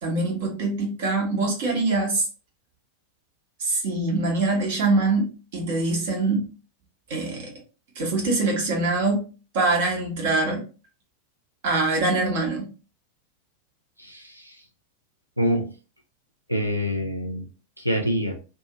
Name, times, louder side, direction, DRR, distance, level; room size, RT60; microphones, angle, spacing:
voice 1, 0.0-2.3 3.6-6.5 7.1-7.5 8.0-9.3 9.5-10.6 11.6-12.7, right 3 dB, 55° right, 1.1 m, -24 dB
voice 2, 14.0-14.6 15.4-15.7 16.5-17.5 17.8-18.3, equal, 90° right, 0.6 m, -26 dB
2.6 x 2.4 x 2.9 m
figure-of-eight pair, 90°, 0 cm